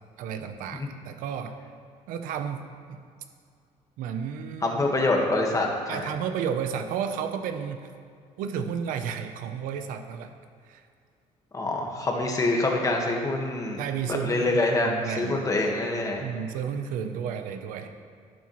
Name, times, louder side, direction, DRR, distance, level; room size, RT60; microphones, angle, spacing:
voice 1, 0.2-1.6 2.1-3.0 4.0-5.0 5.9-7.9 8.4-10.3 10.7-10.8 13.8-15.4 16.2-17.9, right 7 dB, 85° right, 8 dB, 0.8 m, -32 dB
voice 2, 4.6-6.1 11.5-13.8 14.1-16.2, left 2 dB, 25° left, 0 dB, 1.7 m, -26 dB
11.5 x 9.7 x 3.2 m, 2.2 s
cardioid pair, 110°, 14 cm